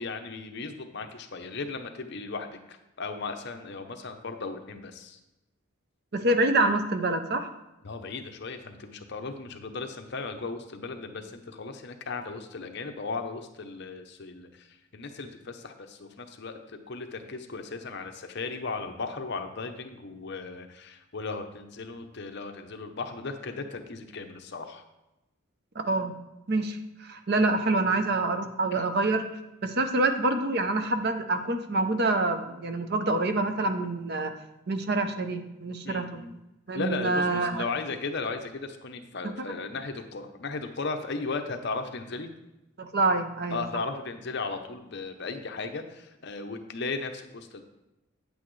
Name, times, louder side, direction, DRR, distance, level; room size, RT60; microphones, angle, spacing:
voice 1, 0.0-5.2 7.8-24.8 28.7-28.9 35.8-36.4 36.7-42.3 43.5-47.6, left 4 dB, 50° left, 6 dB, 0.7 m, -36 dB
voice 2, 6.1-7.5 25.8-26.1 26.5-29.2 29.6-34.3 34.7-36.2 36.7-37.6 39.5-39.6 42.8-43.6, right 2 dB, 50° right, 8 dB, 0.6 m, -26 dB
8.7 x 8.2 x 3.2 m, 0.96 s
head